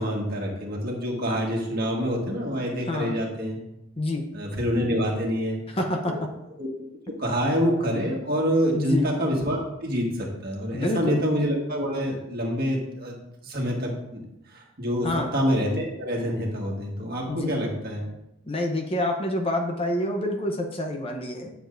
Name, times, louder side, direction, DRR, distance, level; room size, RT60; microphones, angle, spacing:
voice 1, 0.0-3.6 4.3-5.6 6.1-6.2 6.6-6.7 7.2-13.1 13.4-14.2 14.5-15.1 15.3-18.0, equal, 45° right, -1 dB, 1.7 m, -26 dB
voice 2, 5.7-6.3 8.7-9.1 10.7-11.2 15.0-15.3 17.3-17.5 18.5-21.5, left 1 dB, 25° left, 3 dB, 0.7 m, -27 dB
10.5 x 7.1 x 2.6 m, 0.86 s
head